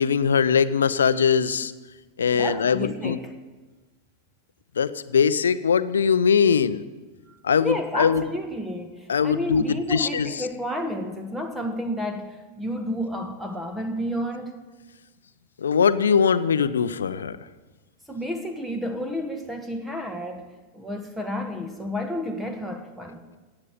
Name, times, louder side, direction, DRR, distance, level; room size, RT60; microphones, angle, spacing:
voice 1, 0.0-1.7 2.2-3.2 4.8-6.8 7.4-8.2 9.1-10.5 15.6-17.4, left 6 dB, 70° left, 15 dB, 0.7 m, -21 dB
voice 2, 2.3-3.3 7.3-14.6 18.1-20.5 20.7-23.2, left 1 dB, 5° right, 5 dB, 1.4 m, -31 dB
16.0 x 8.8 x 9.2 m, 1.3 s
figure-of-eight pair, 90°, 0 cm